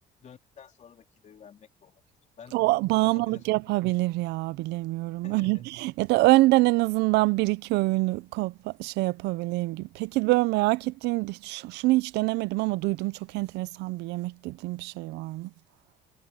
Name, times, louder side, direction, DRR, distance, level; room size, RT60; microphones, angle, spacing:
voice 1, 0.2-2.0 2.4-3.7 5.2-5.7, left 7 dB, 45° left, 3.4 m, -51 dB
voice 2, 2.5-15.5, right 21 dB, 85° right, 0.6 m, -25 dB
cardioid pair, 110°, 17 cm